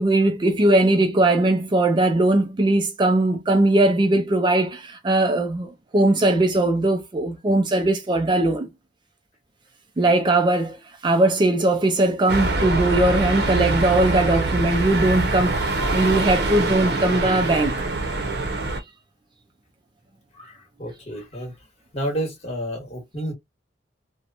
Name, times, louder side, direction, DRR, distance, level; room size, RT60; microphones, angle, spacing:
voice 1, 0.0-8.7 10.0-10.8 11.0-17.8, right 2 dB, 25° right, 0.3 m, -20 dB
sound 1, 12.3-18.8, right 2 dB, 65° right, 0.6 m, -24 dB
voice 2, 20.3-21.5 21.9-23.3, equal, 35° left, 1.2 m, -30 dB
2.8 x 2.1 x 2.4 m
head